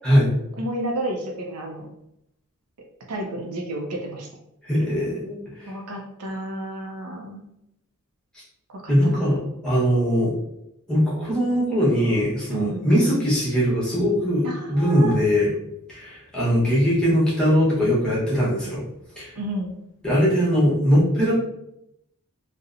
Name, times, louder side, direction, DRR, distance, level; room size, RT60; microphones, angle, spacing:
voice 1, 0.6-1.9 3.1-4.3 5.7-7.4 8.7-9.3 12.5-12.9 14.4-15.1 19.4-19.7, right 1 dB, 75° right, 2 dB, 0.5 m, -31 dB
voice 2, 4.7-5.7 8.9-10.3 10.9-15.5 15.9-18.8 19.2-19.3 20.0-21.3, equal, 5° left, -8 dB, 0.9 m, -21 dB
2.7 x 2.0 x 2.4 m, 0.81 s
head